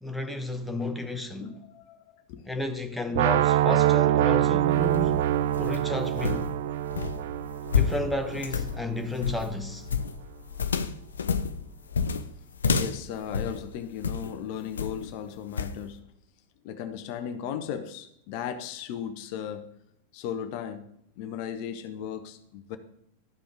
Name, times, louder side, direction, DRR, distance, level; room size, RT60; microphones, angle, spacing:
voice 1, 0.0-1.5 2.5-5.2 5.6-6.5 7.7-9.9, left 1 dB, 5° left, 0.9 m, -32 dB
voice 2, 1.4-2.4 5.8-5.9 7.1-7.3 12.7-16.0 16.6-19.7 20.1-20.9 21.2-22.8, left 9 dB, 45° left, 0.8 m, -36 dB
sound 1, 3.1-9.1, right 13 dB, 55° right, 0.3 m, -25 dB
sound 2, 4.6-14.3 14.8-15.1 15.6-15.8, left 6 dB, 70° left, 0.5 m, -30 dB
12.0 x 5.2 x 5.0 m
figure-of-eight pair, 90°, 0 cm